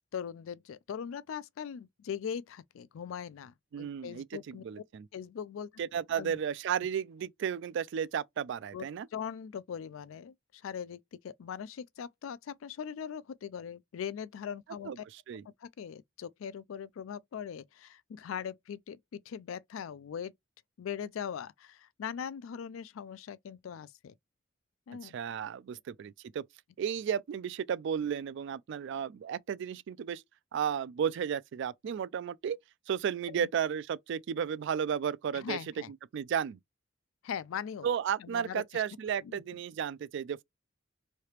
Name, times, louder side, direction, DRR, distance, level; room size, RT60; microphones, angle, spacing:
voice 1, 0.1-4.8 5.1-5.7 6.1-6.4 8.7-15.0 15.6-20.3 20.8-24.1 24.9-25.1 33.3-33.5 35.3-35.9 37.2-37.9 38.2-38.8 39.2-39.4, left 7 dB, 80° left, 0.3 m, -40 dB
voice 2, 3.7-5.1 5.8-9.1 14.8-15.4 25.0-26.4 26.8-30.2 30.5-32.6 32.9-35.6 36.1-36.6 37.8-40.4, right 8 dB, 60° right, 0.3 m, -33 dB
3.2 x 2.8 x 2.9 m
head